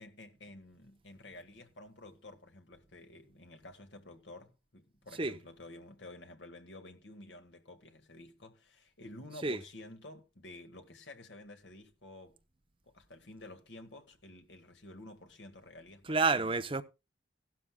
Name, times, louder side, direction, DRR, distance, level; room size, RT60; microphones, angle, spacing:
voice 1, 0.0-12.4 12.9-16.5, left 2 dB, 70° left, 1.8 m, -51 dB
voice 2, 16.0-16.8, right 3 dB, 30° right, 0.7 m, -29 dB
15.5 x 12.5 x 2.3 m
head